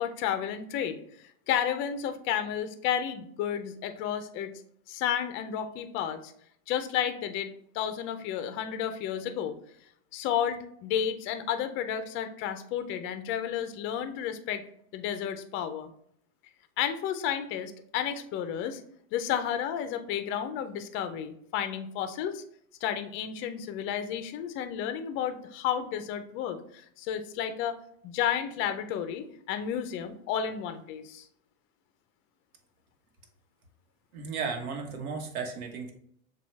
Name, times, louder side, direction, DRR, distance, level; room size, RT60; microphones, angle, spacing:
voice 1, 0.0-4.5 4.9-6.3 6.7-7.5 7.7-9.5 10.1-14.6 14.9-15.9 16.8-18.8 19.1-22.4 22.8-26.6 27.0-27.7 28.0-31.3, left 9 dB, 30° left, 9 dB, 0.4 m, -32 dB
voice 2, 34.1-35.9, right 5 dB, 75° right, 3 dB, 1.1 m, -34 dB
6.9 x 2.3 x 3.1 m, 0.67 s
hypercardioid pair, 115°, 42 cm